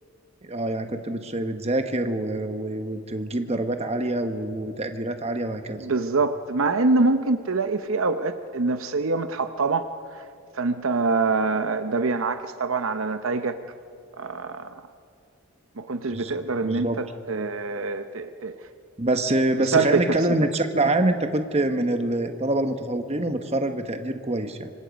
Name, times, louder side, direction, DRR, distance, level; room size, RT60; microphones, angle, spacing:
voice 1, 0.4-5.9 16.1-16.4 16.7-17.0 19.0-24.7, right 2 dB, 30° right, 7 dB, 1.2 m, -25 dB
voice 2, 5.8-10.2 10.5-13.6 14.2-14.8 15.8-18.5 19.6-20.2, right 3 dB, 65° right, 10 dB, 0.7 m, -25 dB
26.5 x 24.5 x 5.2 m, 2.4 s
head